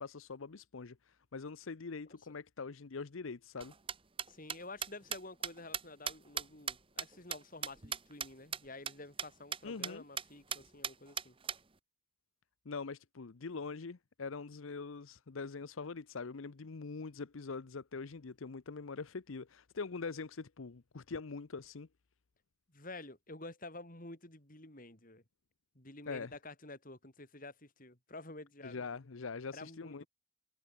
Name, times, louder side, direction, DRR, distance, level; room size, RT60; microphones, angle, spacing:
voice 1, 0.0-3.7 9.6-10.0 12.7-21.9 26.1-26.4 28.6-30.0, left 4 dB, 80° left, 0.7 m, -43 dB
sound 1, 3.6-8.3 8.5-8.6 8.9-9.0 9.2-9.3 9.5-9.9 10.2-10.3 10.5-11.6, right 7 dB, 25° right, 1.3 m, -38 dB
voice 2, 4.3-11.3 22.7-25.2 25.7-28.8 29.5-30.1, left 2 dB, 40° left, 4.9 m, -50 dB
head